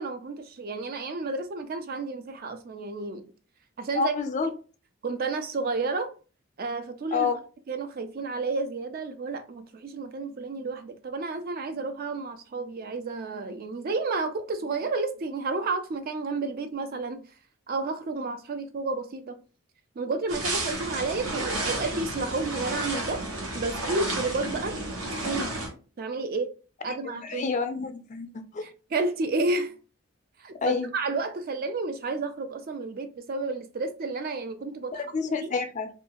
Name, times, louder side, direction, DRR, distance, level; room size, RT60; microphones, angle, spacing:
voice 1, 0.0-3.2 3.8-4.1 5.0-6.1 6.6-7.3 7.7-17.2 17.7-19.4 20.0-23.3 23.5-24.8 25.1-25.6 26.0-26.5 26.8-27.5 28.6-29.7 30.4-35.0, right 3 dB, 45° right, 0.3 m, -31 dB
voice 2, 4.0-4.5 7.1-7.4 27.2-28.6 30.6-30.9 34.9-35.9, left 5 dB, 35° left, 0.3 m, -28 dB
sound 1, 20.3-25.7, right 2 dB, 65° right, 0.9 m, -32 dB
2.6 x 2.3 x 2.8 m
head